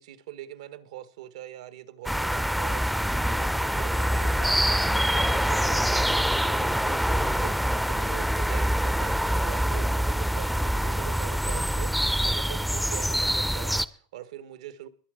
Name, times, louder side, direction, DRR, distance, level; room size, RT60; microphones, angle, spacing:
voice 1, 0.0-14.9, right 12 dB, 85° right, 1.3 m, -43 dB
sound 1, 2.1-13.9, equal, ahead, 0.5 m, -25 dB
22.0 x 7.4 x 5.0 m
supercardioid pair, 135°, 3 cm